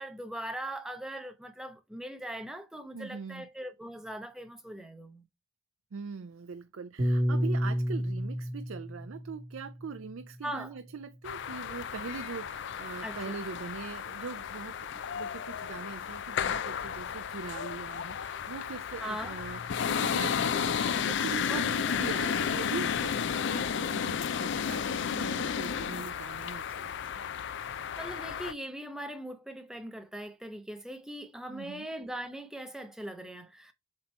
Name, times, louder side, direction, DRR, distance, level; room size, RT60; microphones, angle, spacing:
voice 1, 0.0-5.2 10.4-10.8 13.0-13.4 19.0-19.4 21.5-22.0 28.0-33.7, right 1 dB, 5° right, 0.8 m, -40 dB
voice 2, 2.9-3.5 5.9-27.2 31.5-31.9, right 5 dB, 90° right, 0.5 m, -42 dB
Piano, 7.0-11.4, equal, 35° right, 1.3 m, -32 dB
sound 1, 11.2-28.5, left 7 dB, 60° left, 0.4 m, -33 dB
7.5 x 3.0 x 4.4 m
head